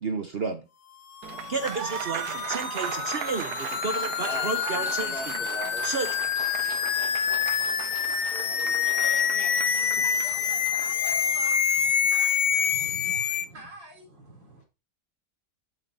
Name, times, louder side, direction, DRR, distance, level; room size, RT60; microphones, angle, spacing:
voice 1, 0.0-0.6 1.5-5.5 5.8-6.1, right 3 dB, 55° right, 0.7 m, -31 dB
sound 1, 1.2-13.4, left 8 dB, 80° left, 0.5 m, -27 dB
Applause, 1.2-11.6, right 12 dB, 70° right, 1.1 m, -37 dB
Speech, 3.9-5.9 6.2-7.0 8.5-9.1, equal, ahead, 2.5 m, -41 dB
voice 2, 8.8-9.9, left 3 dB, 60° left, 2.6 m, -42 dB
voice 3, 9.6-14.6, right 1 dB, 90° right, 4.7 m, -46 dB
8.3 x 6.7 x 4.1 m
omnidirectional pair, 1.9 m